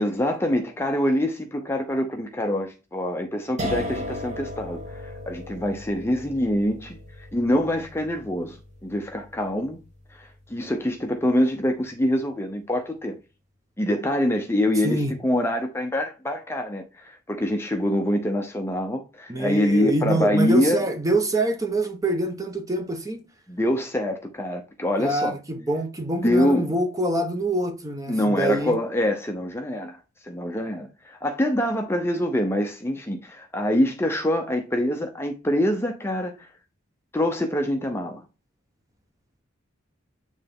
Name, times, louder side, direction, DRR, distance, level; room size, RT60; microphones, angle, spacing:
voice 1, 0.0-9.8 10.1-13.2 13.8-20.8 23.5-25.4 26.2-26.7 28.1-36.5 37.1-38.2, left 1 dB, 10° left, 0.6 m, -25 dB
sound 1, 3.6-10.5, left 1 dB, 35° right, 1.4 m, -36 dB
voice 2, 19.3-23.2 25.0-28.8, right 1 dB, 15° right, 0.9 m, -25 dB
9.0 x 3.2 x 3.6 m
head